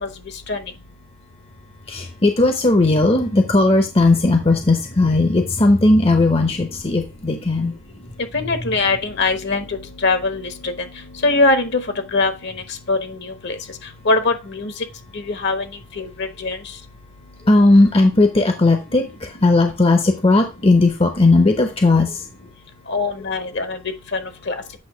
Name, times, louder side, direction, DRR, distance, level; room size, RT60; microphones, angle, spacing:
voice 1, 1.9-7.8 8.5-8.7 17.4-22.3, left 2 dB, 30° left, 5 dB, 0.8 m, -16 dB
voice 2, 8.3-9.6 10.0-10.7 11.2-11.8 12.1-12.5 12.9-13.1 13.4-13.5 14.1-14.7 15.4-15.6 16.0-16.6 22.9-23.8 24.5-24.6, left 3 dB, 60° left, 8 dB, 1.2 m, -21 dB
8.5 x 2.9 x 5.6 m, 0.28 s
head